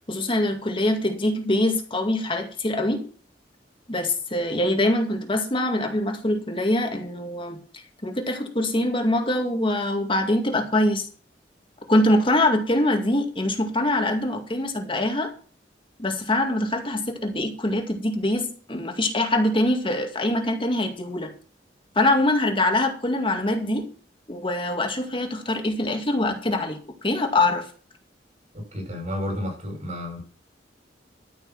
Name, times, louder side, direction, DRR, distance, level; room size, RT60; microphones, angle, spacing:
voice 1, 0.1-3.0 3.9-7.6 8.0-11.1 11.9-15.3 16.0-21.3 22.0-23.9 24.3-26.8 27.0-27.7, left 1 dB, 30° left, 3 dB, 2.2 m, -23 dB
voice 2, 28.5-30.2, left 1 dB, 45° right, 1 dB, 7.1 m, -31 dB
13.5 x 6.5 x 6.1 m, 0.39 s
head